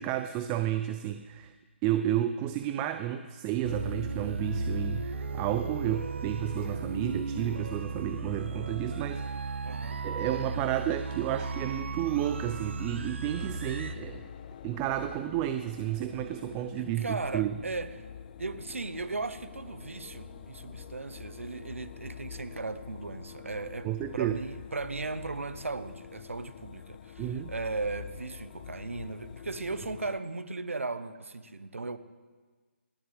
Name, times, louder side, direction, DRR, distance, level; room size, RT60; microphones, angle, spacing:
voice 1, 0.0-1.5 1.8-9.8 10.0-14.2 14.6-17.6 23.8-24.4 27.2-27.5, right 12 dB, 20° right, 9 dB, 0.5 m, -32 dB
sound 1, 3.6-13.9, right 3 dB, 65° right, 1.2 m, -35 dB
voice 2, 9.6-10.0 16.8-17.9 18.4-32.0, right 3 dB, 85° right, 12 dB, 1.1 m, -37 dB
sound 2, 13.3-30.2, left 8 dB, 40° left, 0.5 m, -46 dB
sound 3, 18.6-23.7, equal, 5° left, 4.7 m, -57 dB
20.0 x 17.5 x 3.4 m, 1.4 s
figure-of-eight pair, 145°, 7 cm